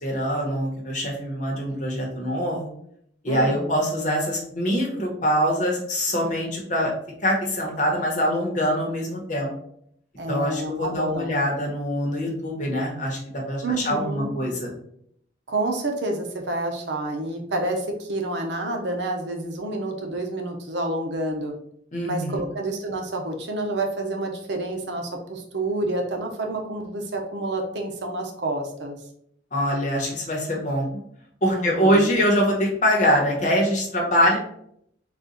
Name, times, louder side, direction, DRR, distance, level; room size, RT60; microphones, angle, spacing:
voice 1, 0.0-2.7 3.2-6.9 7.2-9.5 10.3-14.7 21.9-22.4 29.5-30.9 31.4-34.4, equal, 45° left, -1 dB, 1.1 m, -24 dB
voice 2, 3.3-3.7 10.2-11.3 13.6-14.3 15.5-21.5 22.0-29.0 31.4-32.1, right 2 dB, 70° right, 3 dB, 0.7 m, -29 dB
4.1 x 2.4 x 3.8 m, 0.69 s
head